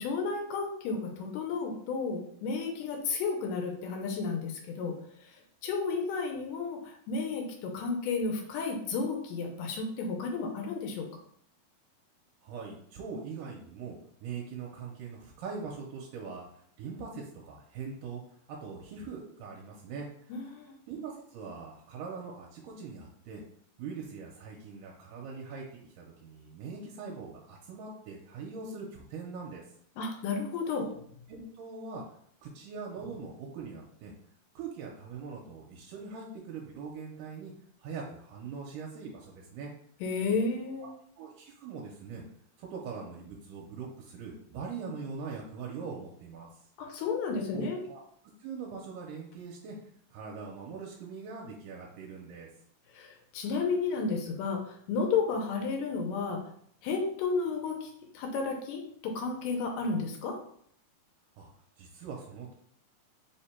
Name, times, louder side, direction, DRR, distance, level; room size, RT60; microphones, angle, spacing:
voice 1, 0.0-11.1 20.3-20.8 30.0-30.8 40.0-40.9 46.8-47.8 52.9-56.4 56.8-60.4, left 4 dB, 90° left, 1 dB, 2.3 m, -32 dB
voice 2, 12.4-18.2 18.5-20.5 20.9-23.4 23.8-29.6 30.8-30.9 31.3-32.0 32.4-34.1 34.6-37.5 37.8-39.7 41.2-42.2 42.6-46.5 47.5-48.0 48.4-49.8 50.1-52.5 61.4-61.5 61.8-62.5, right 5 dB, 80° right, -2 dB, 2.2 m, -42 dB
5.1 x 2.2 x 4.2 m, 0.65 s
omnidirectional pair, 3.7 m